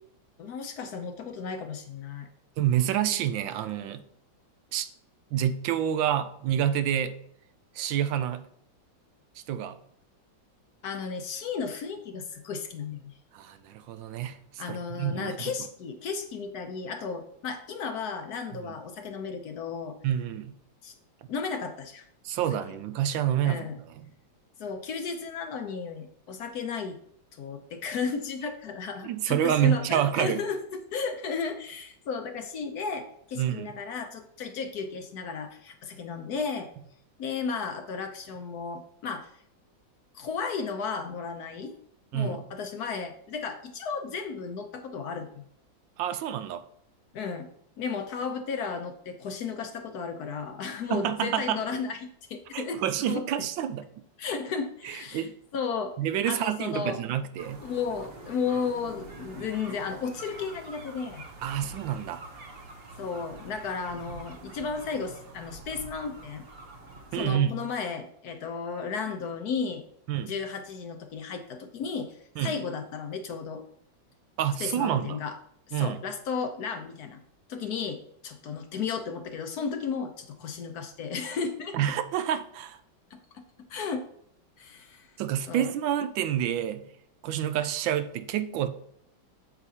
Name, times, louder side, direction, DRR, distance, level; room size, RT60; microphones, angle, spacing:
voice 1, 0.4-2.3 10.8-13.2 14.6-20.0 20.8-20.9 21.3-22.1 23.4-23.7 24.6-27.0 27.4-36.7 37.2-39.3 40.1-41.7 42.1-45.5 47.1-47.5 47.8-52.0 52.3-52.8 53.1-53.2 54.2-55.9 56.3-57.0 57.6-61.2 63.0-66.4 67.1-69.8 70.2-73.6 74.6-75.4 75.7-77.2 77.5-81.8 83.1-83.4 83.7-84.0 84.6-85.1 85.5-85.7, left 5 dB, 65° left, 6 dB, 1.1 m, -34 dB
voice 2, 2.6-4.0 4.7-4.9 5.3-7.2 7.7-8.5 9.5-9.7 13.3-15.5 20.0-20.6 22.2-24.1 29.0-30.4 33.4-33.8 42.1-42.4 46.0-46.6 50.9-51.6 52.5-53.8 54.8-55.3 56.0-57.7 61.4-62.2 64.1-64.2 67.1-67.6 70.1-70.3 72.4-72.5 74.4-75.2 75.7-76.0 81.7-82.8 85.2-86.9 87.2-88.7, right 10 dB, 80° right, 11 dB, 1.3 m, -28 dB
sound 1, 57.4-67.2, right 3 dB, 50° right, 0.7 m, -46 dB
8.3 x 6.8 x 2.8 m, 0.69 s
omnidirectional pair, 2.1 m